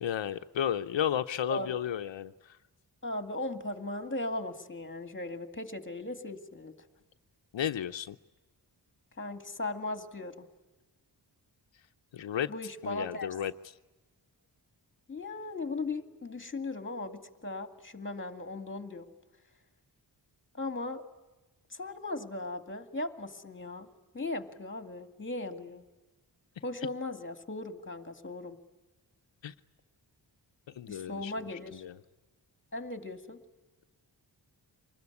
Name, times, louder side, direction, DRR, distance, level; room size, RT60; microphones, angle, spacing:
voice 1, 0.0-2.6 7.5-8.2 12.1-12.5 12.8-13.5 29.4-29.5 30.7-31.3 31.7-31.9, left 9 dB, 85° left, 7 dB, 0.8 m, -33 dB
voice 2, 3.0-6.7 9.2-10.5 12.5-13.3 15.1-19.1 20.5-21.0 21.7-23.9 24.1-25.8 26.6-28.6 30.9-31.8 32.7-33.4, left 2 dB, 25° left, 8 dB, 2.2 m, -37 dB
25.0 x 20.5 x 9.7 m, 1.2 s
wide cardioid pair, 95°, 43 cm